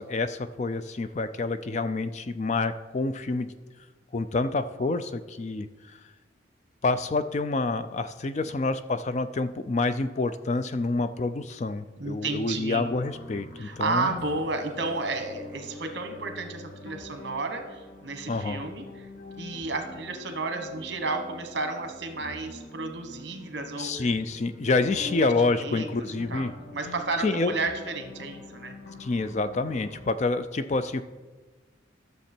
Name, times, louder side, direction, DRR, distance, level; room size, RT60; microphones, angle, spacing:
voice 1, 0.0-3.5 4.1-6.0 6.8-14.2 18.3-18.6 23.8-26.5 27.2-27.5 29.0-31.0, left 3 dB, 35° left, 12 dB, 0.4 m, -28 dB
voice 2, 12.0-12.9 13.6-18.8 19.4-24.1 25.0-25.9 26.3-28.8, right 3 dB, 60° right, 6 dB, 1.2 m, -32 dB
sound 1, 12.5-30.1, left 2 dB, 55° left, 1.8 m, -45 dB
13.0 x 6.8 x 4.4 m, 1.3 s
head